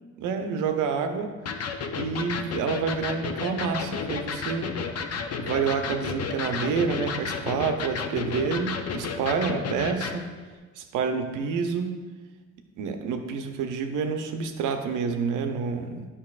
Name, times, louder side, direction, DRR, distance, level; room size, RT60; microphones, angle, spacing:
voice 1, 0.2-1.3 1.9-4.8 5.4-10.3 10.8-12.0 12.8-16.1, right 5 dB, 85° right, 6 dB, 0.7 m, -28 dB
Electric guitar, 1.5-10.2, left 5 dB, 55° left, 0.6 m, -32 dB
8.5 x 5.5 x 2.4 m, 1.4 s
cardioid pair, 90°, 30 cm